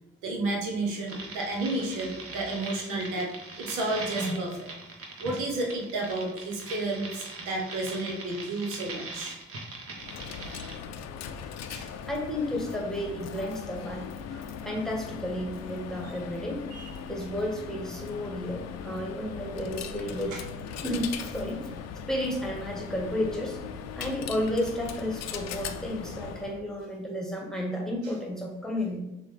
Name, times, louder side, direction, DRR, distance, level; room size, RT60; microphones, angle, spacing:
voice 1, 0.2-3.3 3.6-4.7 5.2-9.4 11.7-11.9 14.3-14.5 16.7-16.9 20.3-20.4, right 2 dB, 80° right, 0 dB, 1.0 m, -31 dB
sound 1, 1.1-10.7, right 3 dB, 50° right, 1.2 m, -40 dB
Coin (dropping), 10.0-26.6, left 7 dB, 60° left, 0.5 m, -39 dB
voice 2, 12.0-14.1 14.6-16.7 17.1-20.4 20.8-21.7 22.1-23.6 23.9-29.0, left 1 dB, ahead, -1 dB, 1.3 m, -32 dB
6.4 x 2.3 x 3.3 m, 0.96 s
hypercardioid pair, 50°, 30 cm